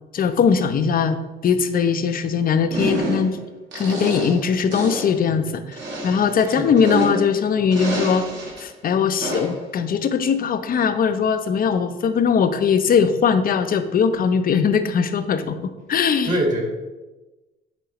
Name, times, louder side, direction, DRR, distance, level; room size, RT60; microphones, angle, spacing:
voice 1, 0.1-1.2 1.4-3.4 3.7-5.8 6.0-8.2 8.6-15.6 15.9-16.3, left 6 dB, 45° left, 10 dB, 0.6 m, -20 dB
sound 1, 2.7-3.4 3.7-4.4 4.7-5.2 5.7-7.4 7.7-8.6 9.2-9.6, right 1 dB, 60° right, 2.2 m, -28 dB
voice 2, 16.2-16.6, right 1 dB, 40° right, 1 dB, 1.8 m, -23 dB
8.2 x 4.5 x 3.0 m, 1.1 s
cardioid pair, 85°, 20 cm